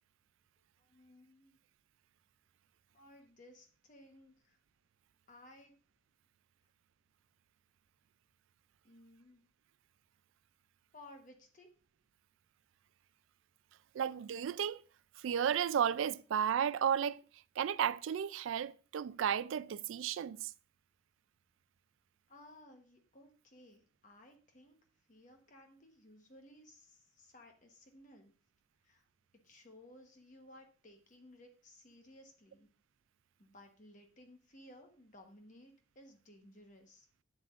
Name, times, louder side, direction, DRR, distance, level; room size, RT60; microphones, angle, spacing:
voice 1, 0.8-1.6 2.9-4.6 5.3-5.7 8.8-9.4 10.9-11.7 22.3-24.8 25.1-28.3 28.8-29.0 29.4-32.7 33.4-37.1, left 1 dB, 40° left, 1.1 m, -58 dB
voice 2, 13.9-14.8 15.2-17.2 17.6-20.5, right 8 dB, 80° right, 0.3 m, -33 dB
8.8 x 7.7 x 2.5 m
head